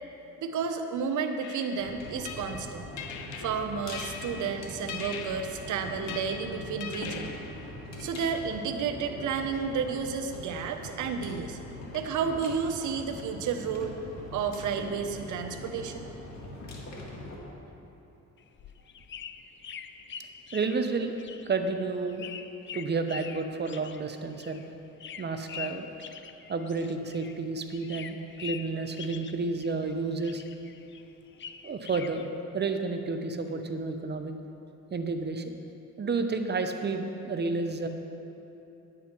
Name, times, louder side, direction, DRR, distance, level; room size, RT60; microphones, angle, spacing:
voice 1, 0.4-2.9 3.4-7.3 8.0-11.6 11.9-14.0 14.3-16.1, right 6 dB, 75° right, 6 dB, 0.9 m, -31 dB
sound 1, 1.4-8.1, left 6 dB, 80° left, 0.8 m, -42 dB
sound 2, 1.8-17.4, left 1 dB, 60° left, 2.0 m, -42 dB
sound 3, 18.4-27.4 27.7-29.9 30.2-32.3, left 7 dB, 40° left, 0.5 m, -44 dB
voice 2, 20.5-21.1 21.5-22.3 22.7-24.6 25.2-25.9 26.5-30.4 31.6-32.2 32.5-34.3 34.9-35.6 36.0-37.9, right 4 dB, 35° right, 6 dB, 0.8 m, -31 dB
10.5 x 9.2 x 4.5 m, 2.9 s
cardioid pair, 90°, 30 cm